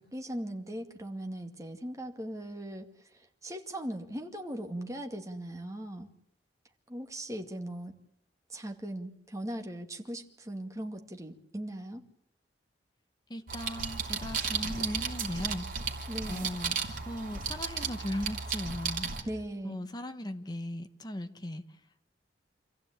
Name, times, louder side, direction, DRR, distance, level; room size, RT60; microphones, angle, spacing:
voice 1, 0.0-6.1 6.9-7.9 8.5-12.0 16.1-16.5 19.2-19.8, right 1 dB, 20° right, 4 dB, 2.2 m, -39 dB
voice 2, 13.3-15.9 16.3-16.8 17.1-19.3 19.6-21.6, left 1 dB, 25° left, 8 dB, 1.4 m, -38 dB
sound 1, 13.5-19.2, right 6 dB, 50° right, 3.1 m, -34 dB
26.5 x 15.5 x 8.8 m, 0.72 s
head